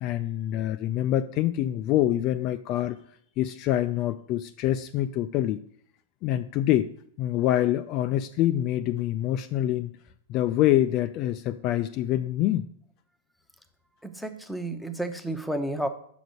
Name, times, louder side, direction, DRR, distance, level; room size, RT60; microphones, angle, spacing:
voice 1, 0.0-3.0 3.4-5.6 6.2-6.9 7.2-9.9 10.3-12.7, left 13 dB, 40° left, 10 dB, 0.3 m, -25 dB
voice 2, 14.0-15.9, right 1 dB, ahead, 7 dB, 0.8 m, -31 dB
6.0 x 5.2 x 6.3 m, 0.64 s
figure-of-eight pair, 100°, 0 cm